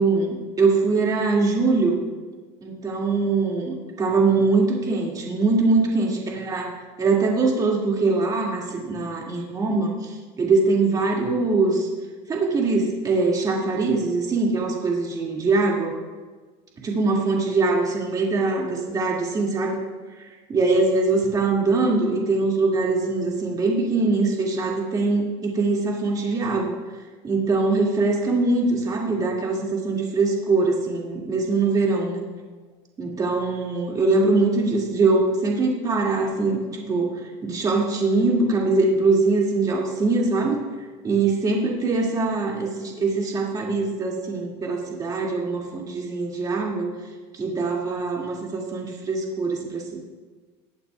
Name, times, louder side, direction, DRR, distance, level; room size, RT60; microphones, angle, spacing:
voice 1, 0.0-2.0 2.6-9.9 10.4-11.9 12.3-15.9 16.8-19.8 20.5-26.7 27.2-32.2 33.0-37.1 37.4-40.6 41.0-46.9 47.3-50.0, right 3 dB, 25° right, -1 dB, 2.1 m, -22 dB
19.5 x 8.3 x 2.3 m, 1.4 s
supercardioid pair, 135°, 15 cm